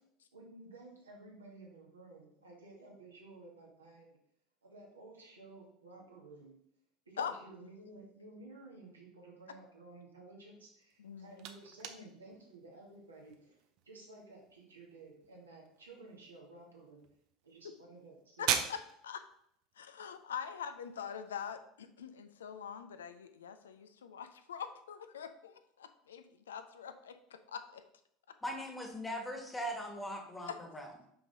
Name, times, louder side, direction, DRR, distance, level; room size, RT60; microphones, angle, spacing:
voice 1, 0.3-4.2 4.6-6.6 7.1-17.0 17.4-18.7, right 2 dB, 80° right, -2 dB, 1.7 m, -54 dB
sound 1, 10.8-21.5, right 8 dB, 55° right, 0.6 m, -43 dB
voice 2, 11.0-11.4 18.4-19.2 19.8-27.8 30.4-30.6, left 7 dB, 75° left, 9 dB, 0.5 m, -44 dB
voice 3, 28.4-30.9, equal, 10° left, 2 dB, 1.5 m, -40 dB
5.8 x 5.2 x 3.9 m, 0.72 s
figure-of-eight pair, 70°, 0 cm